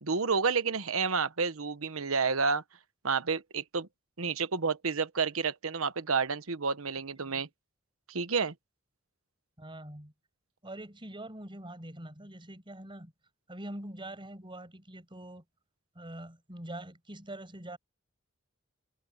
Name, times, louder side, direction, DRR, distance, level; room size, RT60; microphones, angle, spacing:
voice 1, 0.0-2.6 3.0-3.9 4.2-7.5 8.1-8.5, right 5 dB, 80° right, 1.3 m, -30 dB
voice 2, 9.6-10.1 10.6-13.1 13.5-15.4 15.9-17.8, right 1 dB, 25° right, 5.8 m, -44 dB
head